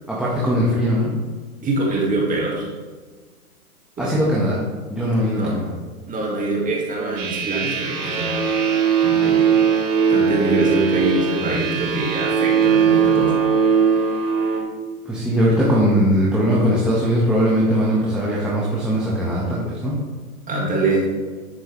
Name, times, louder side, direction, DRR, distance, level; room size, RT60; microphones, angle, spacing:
voice 1, 0.1-1.1 4.0-4.6 4.9-5.7 15.0-20.0, equal, ahead, -7 dB, 1.7 m, -20 dB
voice 2, 1.6-2.7 4.0-4.2 5.3-5.6 6.1-8.5 9.0-9.5 10.1-13.3 20.5-21.1, right 2 dB, 20° right, -3 dB, 2.3 m, -23 dB
sound 1, 7.2-14.6, right 7 dB, 35° right, 3.6 m, -19 dB
10.5 x 9.6 x 3.5 m, 1.4 s
hypercardioid pair, 120°, 45 cm